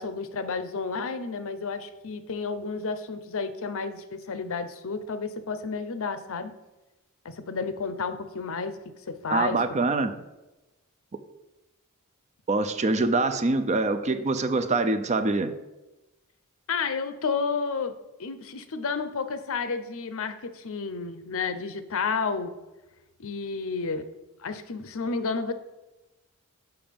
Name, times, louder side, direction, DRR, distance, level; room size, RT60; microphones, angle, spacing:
voice 1, 0.0-6.5 7.2-9.9 10.1-10.2 16.7-17.9 18.2-22.6 23.2-24.1 24.4-25.5, left 4 dB, 65° left, 11 dB, 0.7 m, -31 dB
voice 2, 9.3-10.1 12.5-15.6, right 3 dB, 30° right, 10 dB, 0.5 m, -24 dB
7.1 x 5.9 x 5.1 m, 1.1 s
head